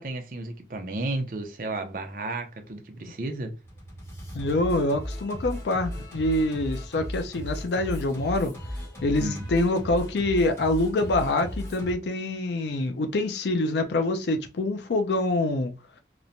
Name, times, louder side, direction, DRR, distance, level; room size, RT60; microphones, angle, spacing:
voice 1, 0.0-3.5 9.2-9.5, right 2 dB, 50° right, 0.5 m, -33 dB
Singing, 3.6-11.9, equal, 15° left, 0.9 m, -36 dB
voice 2, 4.3-8.5 9.0-15.7, left 2 dB, 75° left, 0.4 m, -25 dB
3.0 x 2.1 x 2.5 m
head